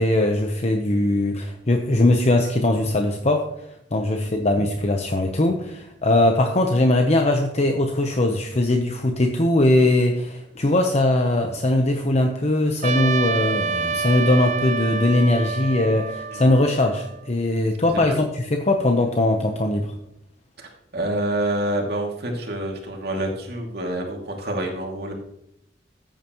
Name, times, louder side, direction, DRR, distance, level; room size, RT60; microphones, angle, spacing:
voice 1, 0.0-3.5 3.9-19.9, left 1 dB, 40° left, 4 dB, 0.9 m, -20 dB
Trumpet, 12.8-17.3, right 4 dB, 40° right, 0.5 m, -28 dB
voice 2, 17.9-18.2 20.6-25.1, right 1 dB, 60° right, 1 dB, 2.5 m, -27 dB
14.5 x 9.0 x 3.0 m, 0.80 s
head